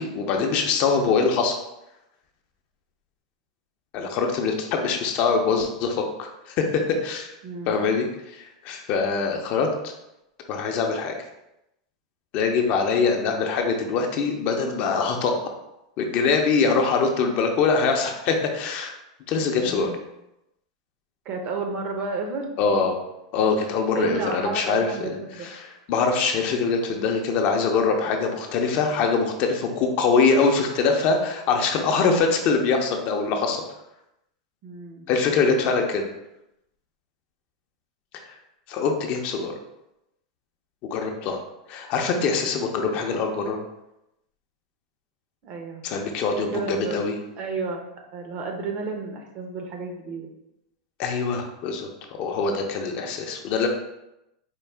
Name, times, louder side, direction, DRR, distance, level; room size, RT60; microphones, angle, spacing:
voice 1, 0.0-1.6 3.9-7.3 7.7-9.7 10.5-11.2 12.3-15.3 16.0-18.9 19.3-19.9 22.6-23.0 23.3-24.9 25.6-33.6 35.1-36.1 38.7-39.5 40.8-41.4 41.7-43.6 45.8-47.1 51.0-51.9 52.2-53.7, left 4 dB, 45° left, 3 dB, 0.6 m, -23 dB
voice 2, 7.4-7.7 19.6-20.0 21.2-22.5 23.9-25.5 34.6-35.1 45.4-45.8 46.5-47.0 47.4-47.9 48.1-50.3, right 4 dB, 40° right, 3 dB, 0.7 m, -31 dB
4.6 x 2.3 x 3.4 m, 0.87 s
supercardioid pair, 140°, 3 cm